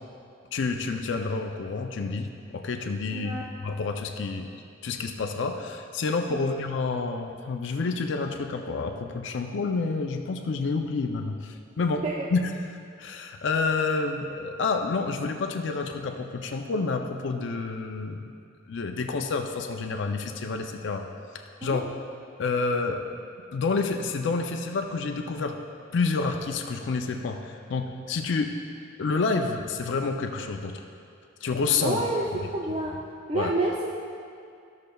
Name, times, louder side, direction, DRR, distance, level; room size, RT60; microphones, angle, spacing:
voice 1, 0.5-3.4 3.6-4.5 4.8-12.0 12.3-12.4 13.0-18.3 18.7-21.1 21.6-21.9 22.4-23.0 23.5-25.6 25.9-28.5 29.0-30.7 31.4-32.0 33.3-33.5, left 4 dB, 65° left, 4 dB, 0.4 m, -28 dB
voice 2, 3.1-3.5 6.3-6.5 12.0-12.3 21.6-21.8 31.8-33.0 33.3-33.9, right 2 dB, 30° right, -3 dB, 0.4 m, -29 dB
13.5 x 6.4 x 2.3 m, 2.4 s
head